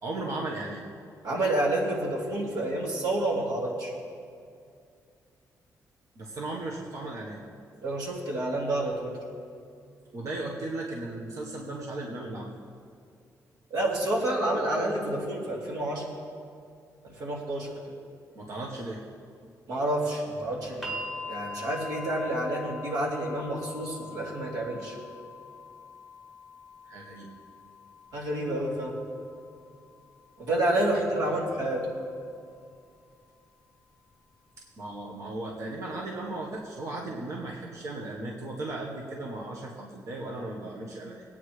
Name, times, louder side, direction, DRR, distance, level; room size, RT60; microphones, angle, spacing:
voice 1, 0.0-0.9 6.1-7.4 10.1-12.5 18.3-19.0 26.9-27.3 31.3-31.4 34.8-41.2, right 2 dB, 55° right, -2 dB, 1.3 m, -36 dB
voice 2, 1.2-3.9 7.8-9.1 13.7-16.0 17.0-17.7 19.7-20.9 21.3-25.0 28.1-28.9 30.4-31.8, right 1 dB, 85° right, -2 dB, 2.5 m, -29 dB
sound 1, 20.8-32.9 34.0-34.1, left 3 dB, ahead, 1.6 m, -44 dB
21.0 x 9.0 x 3.3 m, 2.4 s
cardioid pair, 140°, 6 cm